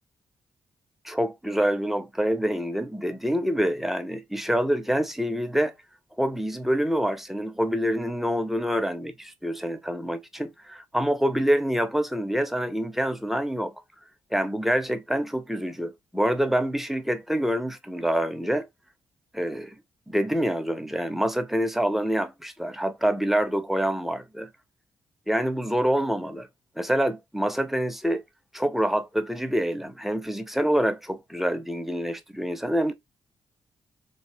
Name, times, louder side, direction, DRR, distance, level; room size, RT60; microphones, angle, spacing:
voice 1, 1.0-5.7 6.2-13.7 14.3-18.7 19.3-19.8 20.1-24.5 25.3-26.5 26.8-28.2 28.5-32.9, equal, ahead, 0.5 m, -26 dB
2.7 x 2.1 x 2.4 m
hypercardioid pair, 45°, 10 cm